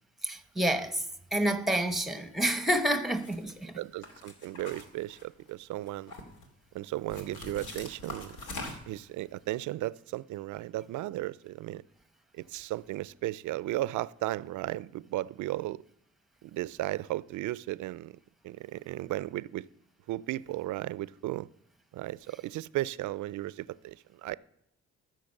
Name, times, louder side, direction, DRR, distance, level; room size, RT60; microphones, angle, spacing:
voice 1, 0.2-1.0 1.3-3.7, right 1 dB, ahead, 0.9 m, -28 dB
sound 1, 3.2-3.5 4.0-5.5 5.9-6.5 7.1-9.0, left 2 dB, 80° left, 2.4 m, -43 dB
voice 2, 3.7-6.1 6.7-8.4 8.9-11.8 12.4-15.8 16.4-18.1 18.4-19.6 20.1-21.5 21.9-24.4, right 16 dB, 75° right, 0.5 m, -35 dB
14.0 x 6.6 x 6.5 m
cardioid pair, 90°, 30 cm